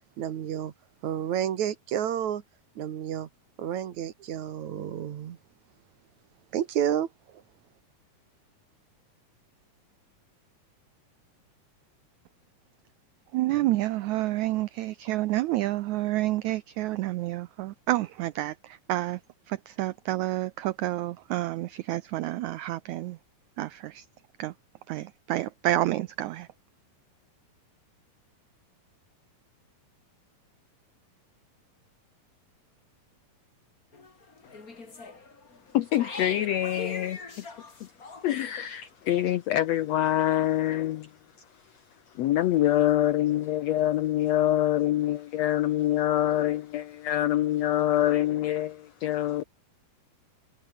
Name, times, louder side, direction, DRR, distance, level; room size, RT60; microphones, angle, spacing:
voice 1, 0.2-0.7 1.0-2.4 2.8-3.3 3.6-5.4 6.5-7.4, right 10 dB, 60° right, 2.7 m, -30 dB
voice 2, 13.3-19.2 19.5-23.2 23.6-24.0 24.4-24.5 24.9-26.5, right 16 dB, 80° right, 1.7 m, -29 dB
sound 1, 33.9-38.5, left 4 dB, 25° left, 3.1 m, -42 dB
voice 3, 35.7-37.5 37.8-37.9 38.2-41.1 42.1-49.4, left 13 dB, 90° left, 1.4 m, -25 dB
omnidirectional pair, 4.1 m